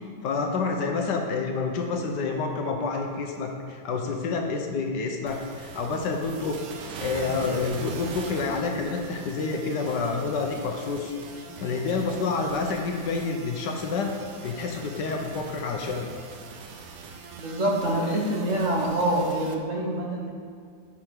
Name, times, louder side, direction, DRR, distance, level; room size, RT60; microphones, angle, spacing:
voice 1, 0.2-6.6 7.0-14.1 14.4-16.1, left 4 dB, 70° left, 3 dB, 1.3 m, -28 dB
sound 1, 5.3-19.5, right 5 dB, 70° right, 1.2 m, -42 dB
voice 2, 17.4-20.3, right 1 dB, 50° right, -2 dB, 1.2 m, -26 dB
9.8 x 4.9 x 4.5 m, 2.2 s
omnidirectional pair, 2.0 m